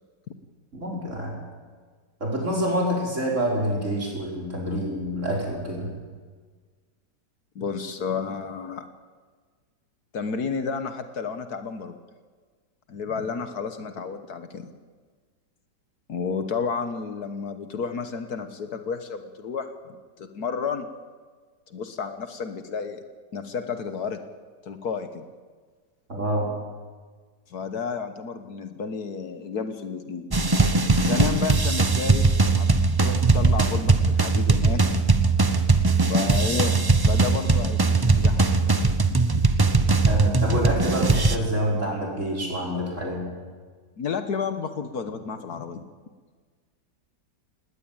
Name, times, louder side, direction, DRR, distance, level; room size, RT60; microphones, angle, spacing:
voice 1, 0.7-1.3 2.2-5.9 26.1-26.5 40.1-43.2, right 1 dB, 45° right, -2 dB, 6.0 m, -27 dB
voice 2, 7.5-8.9 10.1-11.9 12.9-14.7 16.1-20.9 21.7-23.0 23.3-24.2 24.6-25.2 26.1-26.2 27.5-30.3 31.0-32.3 32.6-32.7 33.0-34.8 36.1-38.6 39.3-39.7 44.0-45.9, left 5 dB, 65° left, 8 dB, 1.7 m, -31 dB
sound 1, 30.3-41.4, right 3 dB, 25° right, 0.5 m, -20 dB
19.5 x 19.0 x 8.9 m, 1.5 s
omnidirectional pair, 1.8 m